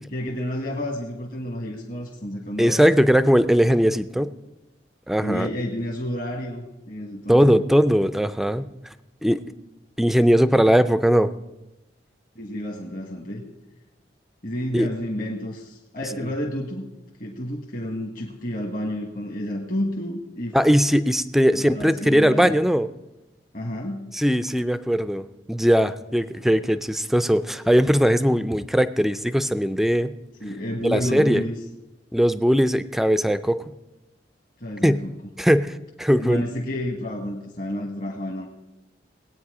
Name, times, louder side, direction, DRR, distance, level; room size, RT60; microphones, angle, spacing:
voice 1, 0.0-2.9 5.2-7.6 12.3-13.4 14.4-16.9 17.2-20.8 21.5-22.5 23.5-24.1 30.4-31.5 34.6-35.1 36.2-38.5, left 1 dB, 50° left, 0 dB, 1.5 m, -30 dB
voice 2, 2.6-4.3 5.1-5.5 7.3-8.7 9.2-9.4 10.0-11.3 14.7-14.9 20.5-22.9 24.1-30.1 30.8-31.4 32.1-33.7 34.8-35.0 35.4-36.4, equal, ahead, 13 dB, 0.4 m, -19 dB
19.5 x 8.9 x 4.9 m, 0.98 s
head